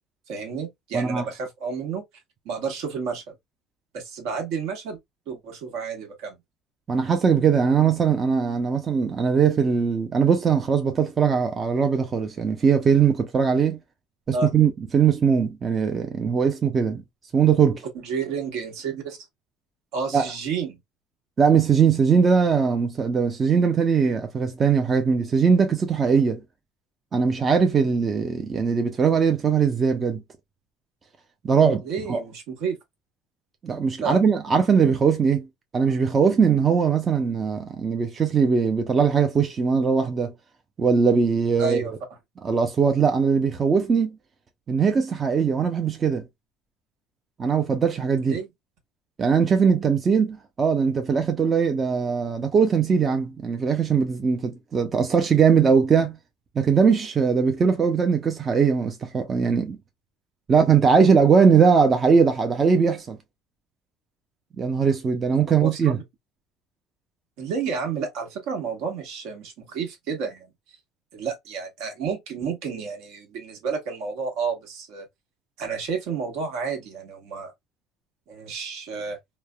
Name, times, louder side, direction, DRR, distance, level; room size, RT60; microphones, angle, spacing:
voice 1, 0.3-2.0 2.4-3.2 3.9-5.0 5.3-6.4 14.3-14.5 18.0-19.2 19.9-20.8 31.8-32.8 34.0-34.2 41.6-41.9 48.2-48.5 65.6-66.0 67.4-70.5 71.1-75.1 75.6-77.5 78.3-79.2, right 5 dB, 70° right, 1.1 m, -30 dB
voice 2, 0.9-1.3 6.9-13.8 14.3-17.0 17.3-17.8 20.1-20.3 21.4-26.4 27.1-30.2 31.4-32.2 33.6-35.5 35.7-40.3 40.8-41.9 42.4-44.2 44.7-46.2 47.4-48.4 49.2-56.2 56.6-59.8 60.5-63.2 64.6-66.0, right 6 dB, 25° right, 0.4 m, -20 dB
3.1 x 2.0 x 2.2 m
cardioid pair, 130°, 0 cm